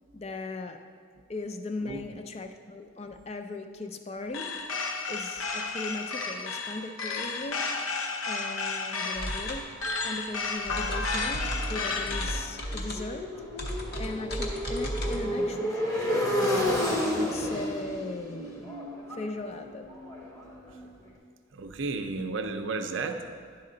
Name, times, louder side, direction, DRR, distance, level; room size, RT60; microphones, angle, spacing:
voice 1, 0.1-0.8 1.3-7.6 8.2-9.7 10.0-13.3 13.6-16.4 17.0-18.8 19.1-19.9, left 2 dB, 30° left, 6 dB, 0.4 m, -38 dB
sound 1, 4.3-12.5, left 4 dB, 85° left, 0.7 m, -32 dB
sound 2, 9.2-15.2, equal, 50° left, 0.9 m, -35 dB
Motorcycle, 11.0-20.9, left 1 dB, 15° left, 0.8 m, -32 dB
voice 2, 15.1-15.5 21.5-23.6, right 3 dB, 65° right, 6 dB, 0.5 m, -34 dB
10.5 x 4.2 x 3.8 m, 2.1 s
head